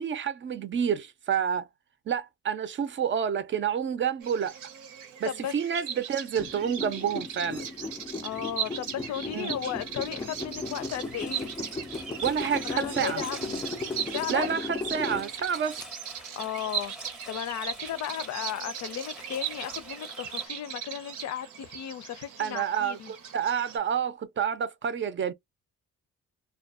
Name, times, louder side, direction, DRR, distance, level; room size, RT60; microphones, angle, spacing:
voice 1, 0.0-1.7 2.1-4.6 5.2-7.7 9.3-9.5 12.2-13.2 14.3-15.8 22.4-25.3, right 8 dB, 40° right, 0.5 m, -29 dB
Bird vocalization bird call bird song, 4.2-23.8, right 8 dB, 85° right, 0.8 m, -38 dB
sound 1, 6.4-15.9, left 3 dB, 15° left, 0.3 m, -37 dB
voice 2, 8.2-11.5 12.4-13.7 14.1-14.5 16.4-23.1, left 10 dB, 65° left, 0.5 m, -35 dB
Engine, 9.8-20.5, equal, 5° right, 0.7 m, -48 dB
2.4 x 2.2 x 2.3 m
cardioid pair, 90°, 30 cm